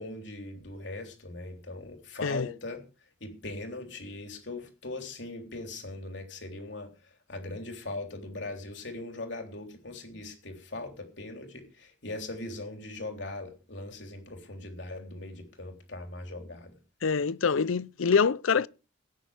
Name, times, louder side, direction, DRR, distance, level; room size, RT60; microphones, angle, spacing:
voice 1, 0.0-2.8 3.2-6.9 7.3-16.7, left 2 dB, 60° left, 3.5 m, -40 dB
voice 2, 17.0-18.7, left 5 dB, 90° left, 0.5 m, -25 dB
17.0 x 9.2 x 5.0 m
head